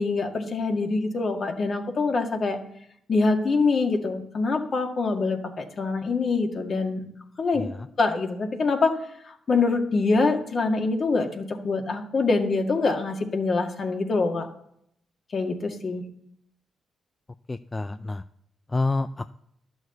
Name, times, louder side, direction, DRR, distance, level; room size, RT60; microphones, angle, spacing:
voice 1, 0.0-2.6 3.1-7.1 7.4-7.6 8.0-9.0 9.3-14.5 15.3-16.0, left 3 dB, 50° left, 4 dB, 1.9 m, -25 dB
voice 2, 7.6-7.9 17.5-18.2 18.7-19.3, left 3 dB, 25° left, 11 dB, 0.4 m, -28 dB
12.0 x 6.4 x 7.9 m, 0.73 s
supercardioid pair, 55°, 0 cm